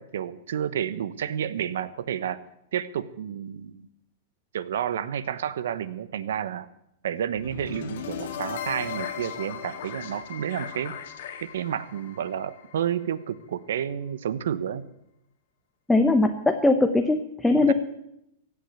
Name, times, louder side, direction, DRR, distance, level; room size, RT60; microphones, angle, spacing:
voice 1, 0.0-2.4 2.7-3.9 4.5-6.7 7.0-11.0 11.4-14.9 17.6-17.7, right 9 dB, 75° right, 15 dB, 1.0 m, -30 dB
sound 1, 7.4-13.4, left 8 dB, 65° left, 1.9 m, -37 dB
voice 2, 15.9-17.7, left 2 dB, 5° left, 5 dB, 0.8 m, -20 dB
16.0 x 8.5 x 8.0 m, 0.81 s
hypercardioid pair, 155°, 0 cm